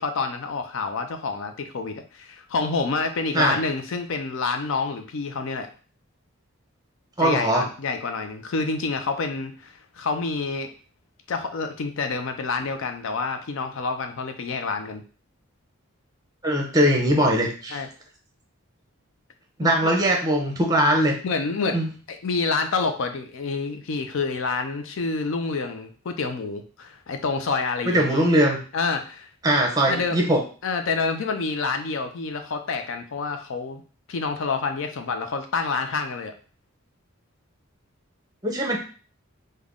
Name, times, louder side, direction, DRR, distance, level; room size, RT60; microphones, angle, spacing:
voice 1, 0.0-5.7 7.2-10.7 11.3-15.0 17.7-17.9 19.6-19.9 21.2-21.8 22.1-28.3 28.7-29.3 29.9-30.2 30.6-33.8 34.1-36.3, left 4 dB, 65° left, 7 dB, 0.4 m, -28 dB
voice 2, 7.2-7.6 16.4-17.8 19.6-21.1 21.7-21.9 27.9-28.6 29.4-30.4 38.4-38.8, right 1 dB, 15° right, 1 dB, 0.7 m, -21 dB
3.5 x 2.2 x 3.6 m, 0.38 s
head